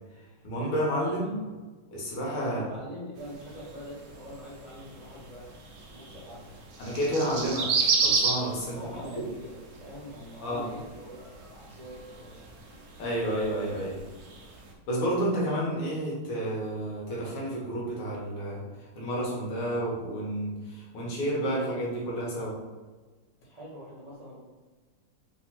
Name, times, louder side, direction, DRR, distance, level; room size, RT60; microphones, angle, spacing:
voice 1, 0.4-1.4 1.9-2.6 6.8-8.8 9.2-9.3 10.4-10.7 13.0-14.0 14.9-18.6 19.0-22.6, right 1 dB, 75° left, -4 dB, 2.1 m, -30 dB
voice 2, 1.0-1.4 2.4-5.5 5.9-6.5 8.6-12.4 23.4-24.4, equal, 35° right, -9 dB, 0.6 m, -44 dB
sound 1, 3.2-14.7, right 4 dB, 65° right, 0.9 m, -34 dB
4.1 x 2.9 x 4.2 m, 1.3 s
omnidirectional pair, 2.4 m